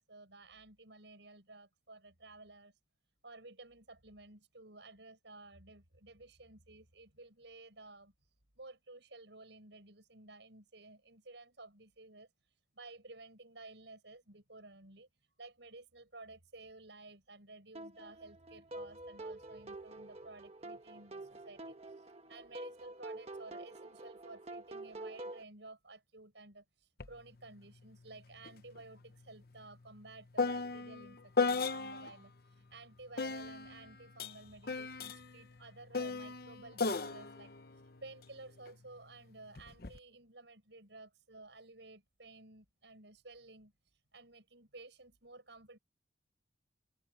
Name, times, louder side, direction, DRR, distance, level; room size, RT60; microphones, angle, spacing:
voice 1, 0.0-2.8 3.2-15.1 15.4-45.8, right 2 dB, 70° right, 6.0 m, -54 dB
sound 1, 17.7-25.4, right 2 dB, 35° right, 1.3 m, -47 dB
sound 2, 27.0-27.2 27.5-32.2 33.2-38.7 39.6-40.0, left 4 dB, 55° left, 0.9 m, -37 dB
head